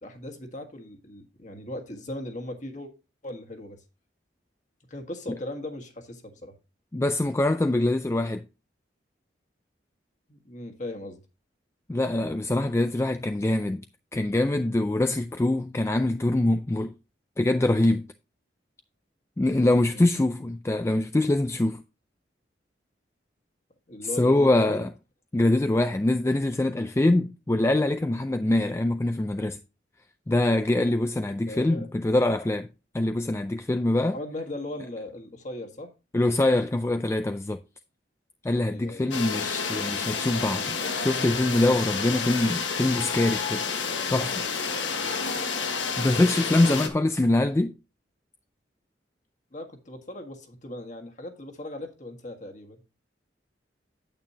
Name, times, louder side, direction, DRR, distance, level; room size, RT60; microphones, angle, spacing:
voice 1, 0.0-2.9 3.2-3.8 4.9-6.5 10.3-11.2 19.9-20.1 23.9-24.9 31.5-31.9 34.1-35.9 38.6-39.1 44.9-45.1 49.5-52.8, left 1 dB, 40° left, 1.6 m, -38 dB
voice 2, 6.9-8.5 11.9-13.8 14.1-16.9 17.4-18.0 19.4-21.8 24.2-24.9 25.3-29.6 30.3-32.7 32.9-34.2 36.1-37.6 38.4-43.6 44.1-44.4 46.0-47.7, left 1 dB, 15° left, 0.3 m, -24 dB
sound 1, 39.1-46.9, left 5 dB, 90° left, 1.4 m, -29 dB
8.9 x 8.7 x 2.8 m
head